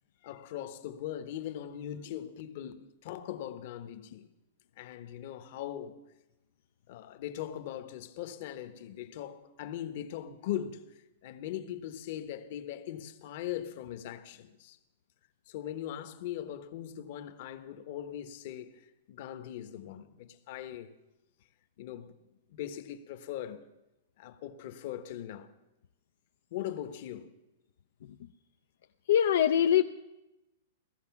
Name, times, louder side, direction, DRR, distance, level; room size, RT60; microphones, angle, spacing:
voice 1, 0.2-4.3 4.8-6.0 6.9-14.8 15.5-20.9 21.8-22.1 22.5-23.7 24.2-25.5 26.5-27.3, left 11 dB, 45° left, 1.1 m, -40 dB
voice 2, 29.1-29.8, left 10 dB, 70° left, 0.5 m, -22 dB
16.5 x 14.5 x 6.0 m
supercardioid pair, 165°, 0 cm